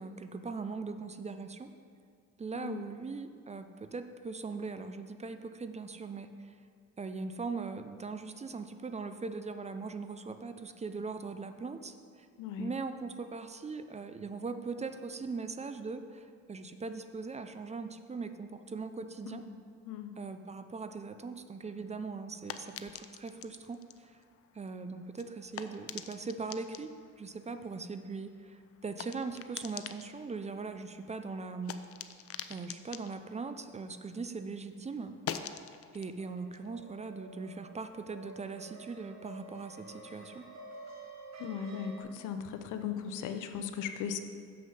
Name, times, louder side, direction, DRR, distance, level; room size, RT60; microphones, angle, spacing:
voice 1, 0.0-1.7 2.4-6.5 7.0-12.3 12.6-19.4 20.2-24.2 24.5-31.8 32.5-35.2 35.9-40.5, right 4 dB, 25° right, 9 dB, 0.5 m, -40 dB
voice 2, 12.4-12.7 19.3-19.5 19.9-20.1 41.4-44.2, left 8 dB, 85° left, 8 dB, 0.7 m, -38 dB
sound 1, 21.6-34.4 34.7-37.9, left 9 dB, 50° left, 0.5 m, -47 dB
sound 2, 36.2-42.0, right 3 dB, 65° right, 1.3 m, -50 dB
7.0 x 6.2 x 5.6 m, 2.1 s
cardioid pair, 90°, 30 cm